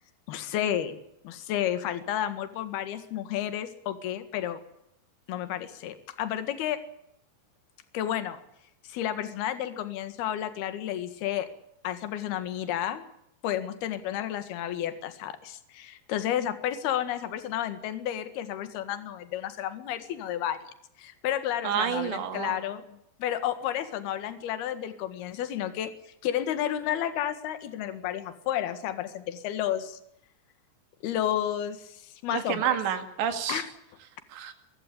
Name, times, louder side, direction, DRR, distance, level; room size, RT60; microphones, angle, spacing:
voice 1, 0.3-1.0 1.2-4.6 5.3-6.8 7.9-8.4 8.8-11.5 11.8-13.0 13.4-20.6 21.0-25.9 26.2-30.0 31.0-32.6 33.5-33.7, left 11 dB, 65° left, 11 dB, 3.5 m, -31 dB
voice 2, 21.6-22.6 32.3-33.6 34.3-34.5, right 9 dB, 80° right, 9 dB, 4.4 m, -29 dB
24.5 x 16.0 x 8.5 m, 0.77 s
omnidirectional pair, 5.0 m